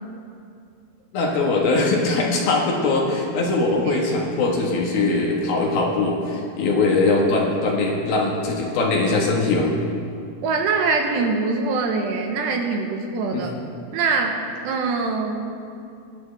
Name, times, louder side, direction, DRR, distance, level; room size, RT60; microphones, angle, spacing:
voice 1, 1.1-9.7 13.3-13.4, left 3 dB, 65° left, -1 dB, 2.9 m, -21 dB
voice 2, 10.4-13.5 13.9-14.4 14.6-15.4, right 4 dB, 75° right, 2 dB, 3.0 m, -23 dB
23.0 x 12.0 x 3.4 m, 2.5 s
omnidirectional pair, 5.2 m